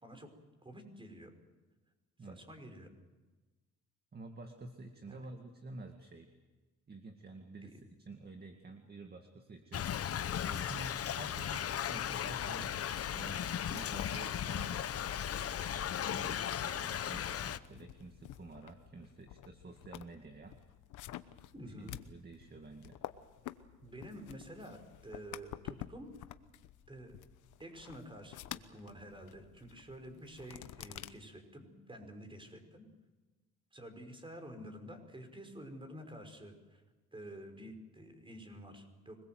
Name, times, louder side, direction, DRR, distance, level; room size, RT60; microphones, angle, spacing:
voice 1, 0.6-1.3 2.2-2.9 5.1-5.2 7.6-7.7 16.3-16.5 21.0-21.2 21.5-22.0 23.8-26.1 26.9-27.2 27.6-32.9 33.7-36.8 37.1-39.2, right 1 dB, 15° right, 6 dB, 5.5 m, -49 dB
voice 2, 4.1-6.3 6.9-10.1 10.5-12.8 13.1-15.0 15.6-16.3 16.6-20.6 21.6-23.0, right 2 dB, 30° right, 5 dB, 2.2 m, -50 dB
Thunder / Rain, 9.7-17.6, left 9 dB, 50° left, 0.9 m, -36 dB
sound 1, 12.5-31.1, left 13 dB, 85° left, 1.1 m, -51 dB
25.5 x 21.0 x 7.8 m, 1.2 s
cardioid pair, 90°, 30 cm